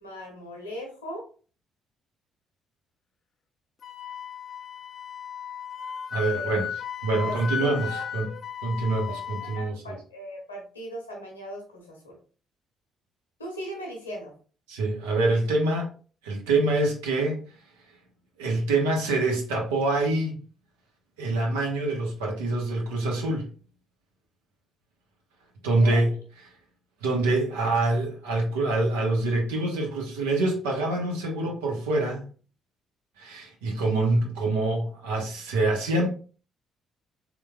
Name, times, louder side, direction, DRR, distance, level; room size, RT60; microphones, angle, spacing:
voice 1, 0.0-1.2 6.3-6.5 7.2-8.0 9.1-12.2 13.4-14.3 25.8-26.0, equal, 85° left, 0 dB, 0.8 m, -38 dB
Wind instrument woodwind instrument, 3.8-9.6, left 8 dB, 45° left, 0.3 m, -35 dB
voice 2, 6.1-8.3 8.6-10.0 14.7-15.9 16.2-17.4 18.4-20.3 21.2-23.5 25.6-26.1 27.0-32.2 33.2-36.1, right 2 dB, 75° right, 1 dB, 0.8 m, -25 dB
3.7 x 3.0 x 2.2 m, 0.40 s
figure-of-eight pair, 45°, 0 cm